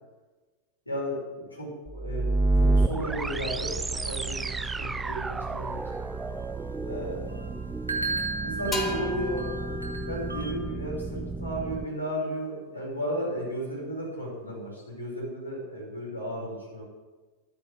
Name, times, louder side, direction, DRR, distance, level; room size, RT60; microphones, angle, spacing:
voice 1, 0.9-2.3 2.6-5.7 6.8-7.3 8.4-9.4 10.1-16.8, equal, 85° left, -4 dB, 5.7 m, -34 dB
sound 1, 1.9-11.8, right 3 dB, 10° right, 0.4 m, -30 dB
sound 2, 3.9-10.5, right 3 dB, 85° right, 1.2 m, -37 dB
sound 3, 8.7-12.3, left 4 dB, 20° left, 2.1 m, -37 dB
11.5 x 8.9 x 8.0 m, 1.3 s
figure-of-eight pair, 90°, 0 cm